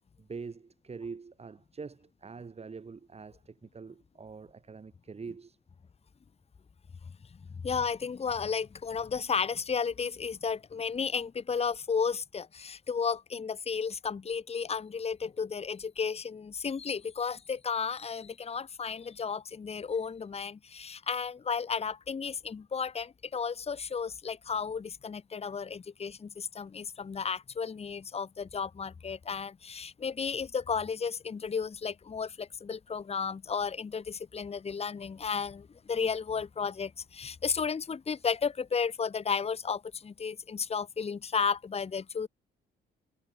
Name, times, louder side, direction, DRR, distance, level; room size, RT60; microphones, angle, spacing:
voice 1, 0.2-5.6, right 5 dB, 30° right, 2.6 m, -44 dB
voice 2, 7.6-42.3, left 6 dB, 30° left, 1.2 m, -33 dB
cardioid pair, 90°, 20 cm